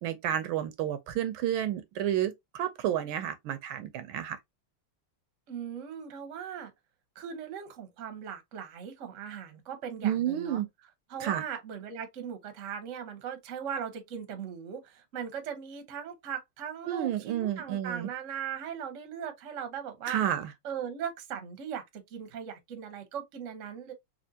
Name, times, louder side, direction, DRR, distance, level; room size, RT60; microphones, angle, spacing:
voice 1, 0.0-4.4 10.0-10.7 11.2-11.4 16.9-18.1 20.1-20.5, right 11 dB, 75° right, 1.3 m, -30 dB
voice 2, 5.5-6.7 7.2-10.6 11.1-20.2 20.6-23.9, right 8 dB, 55° right, 0.9 m, -39 dB
4.3 x 2.5 x 2.7 m
omnidirectional pair, 2.4 m